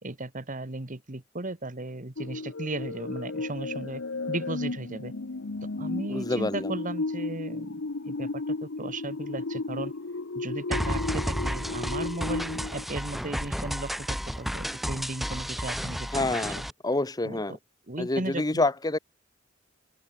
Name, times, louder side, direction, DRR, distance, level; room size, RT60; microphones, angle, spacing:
voice 1, 0.0-4.0 4.3-5.1 5.8-9.9 10.3-16.7 17.2-17.6 17.9-18.7, right 2 dB, 40° right, 1.9 m, -36 dB
sound 1, 2.2-12.9, left 3 dB, 65° left, 0.9 m, -34 dB
voice 2, 6.1-6.7 16.1-17.6 18.0-19.0, left 2 dB, 20° left, 1.0 m, -27 dB
sound 2, 10.7-16.7, equal, ahead, 1.3 m, -32 dB
open air
head